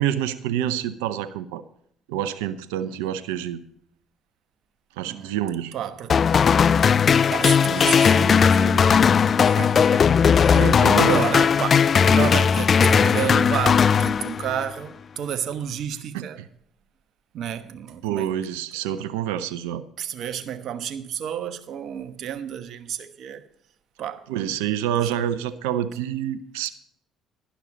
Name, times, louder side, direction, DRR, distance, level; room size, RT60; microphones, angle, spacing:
voice 1, 0.0-1.6 2.1-3.6 5.0-5.7 10.5-11.2 16.1-16.5 18.0-19.8 24.3-26.7, right 10 dB, 80° right, 0.7 m, -27 dB
voice 2, 5.7-6.5 7.3-9.0 9.4-10.6 11.0-16.4 17.3-18.3 20.0-23.4 24.0-24.3 24.9-25.2, right 9 dB, 60° right, 1.2 m, -31 dB
sound 1, 6.1-14.7, left 6 dB, 45° left, 0.3 m, -18 dB
11.5 x 11.5 x 4.1 m
hypercardioid pair, 55°, 0 cm